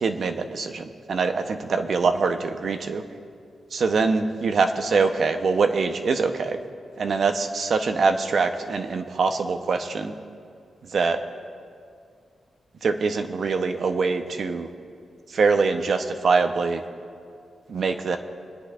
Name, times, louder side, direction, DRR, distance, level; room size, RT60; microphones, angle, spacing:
voice 1, 0.0-3.0 3.7-6.6 7.0-10.1 10.9-11.2 12.8-14.7 15.3-16.8 17.7-18.2, right 4 dB, 60° right, 7 dB, 0.8 m, -23 dB
29.0 x 10.0 x 2.5 m, 2.3 s
wide cardioid pair, 120°, 0 cm